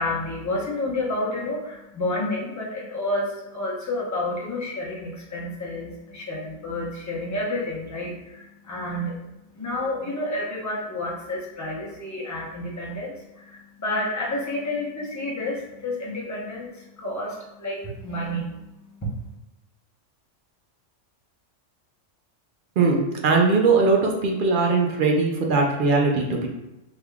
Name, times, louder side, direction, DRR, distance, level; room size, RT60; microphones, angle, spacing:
voice 1, 0.0-9.2 9.5-19.2, left 1 dB, 20° left, -4 dB, 0.6 m, -30 dB
voice 2, 22.8-26.5, right 3 dB, 60° right, 0 dB, 0.5 m, -20 dB
3.4 x 3.4 x 2.3 m, 0.96 s
omnidirectional pair, 1.3 m